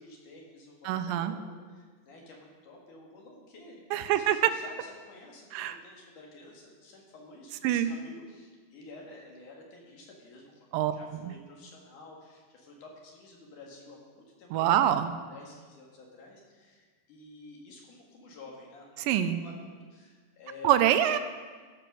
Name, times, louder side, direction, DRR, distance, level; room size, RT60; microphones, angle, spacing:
voice 1, 0.0-20.8, left 2 dB, 65° left, -1 dB, 3.2 m, -51 dB
voice 2, 0.9-1.3 3.9-4.5 5.5-5.8 7.6-7.9 10.7-10.9 11.2-11.3 14.5-15.1 19.0-19.4 20.6-21.2, right 11 dB, 90° right, 10 dB, 2.3 m, -25 dB
14.5 x 6.1 x 6.1 m, 1.5 s
omnidirectional pair, 3.9 m